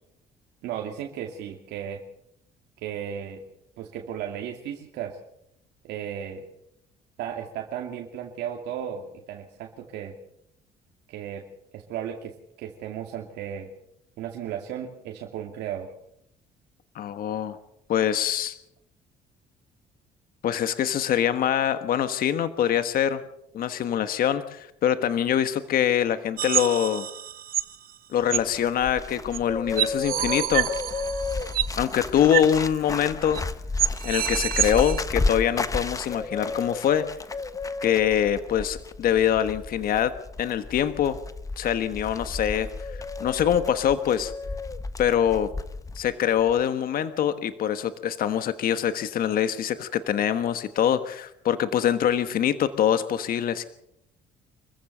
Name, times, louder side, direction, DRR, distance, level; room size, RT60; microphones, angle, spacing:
voice 1, 0.6-2.0 2.8-3.4 3.8-5.2 5.8-6.4 7.2-10.1 11.1-11.4 11.7-13.7 14.2-15.9, right 9 dB, 80° right, 1 dB, 2.5 m, -35 dB
voice 2, 16.9-17.6 17.9-18.6 20.4-23.2 23.5-27.1 28.1-30.7 31.8-33.4 34.0-37.1 37.8-41.2 41.6-42.9 43.2-44.3 45.0-45.5 45.9-53.6, left 9 dB, 60° left, 10 dB, 1.4 m, -24 dB
sound 1, 26.4-27.8 28.3-28.4 29.3-29.4 29.8-31.8 32.3-32.5 32.8-32.9 33.3-33.4 33.8-35.0, right 12 dB, 60° right, 0.9 m, -27 dB
Bird, 28.2-46.0 46.3-46.6, left 3 dB, 20° left, 1.2 m, -33 dB
26.5 x 15.0 x 6.8 m, 0.78 s
cardioid pair, 110°, 17 cm